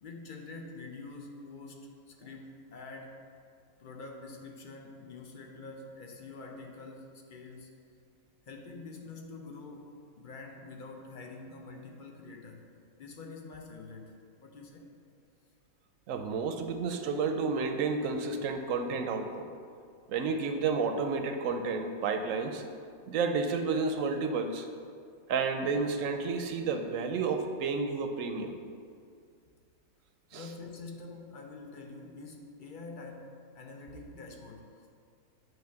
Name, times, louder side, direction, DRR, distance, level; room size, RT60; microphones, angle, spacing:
voice 1, 0.0-3.2 3.8-7.8 8.4-12.7 13.0-14.9 30.3-34.9, left 3 dB, 50° left, 2 dB, 0.6 m, -46 dB
voice 2, 16.1-19.5 20.1-22.6 23.1-24.7 25.3-28.6 30.3-30.5, right 4 dB, 70° right, 6 dB, 0.9 m, -31 dB
8.9 x 3.1 x 5.6 m, 2.2 s
omnidirectional pair, 1.5 m